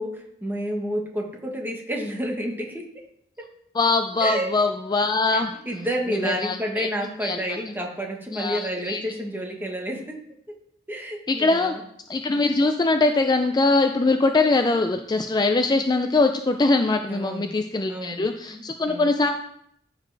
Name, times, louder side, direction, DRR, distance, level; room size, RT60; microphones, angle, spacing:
voice 1, 0.0-2.9 3.4-3.5 4.2-4.6 5.3-10.2 10.9-11.8 17.1-17.5 17.9-19.1, equal, 10° right, 1 dB, 1.3 m, -30 dB
voice 2, 3.7-5.5 6.1-6.9 7.2-7.4 8.3-9.0 11.3-11.8 12.1-19.3, left 3 dB, 25° left, 6 dB, 0.4 m, -22 dB
14.0 x 5.0 x 3.4 m, 0.72 s
head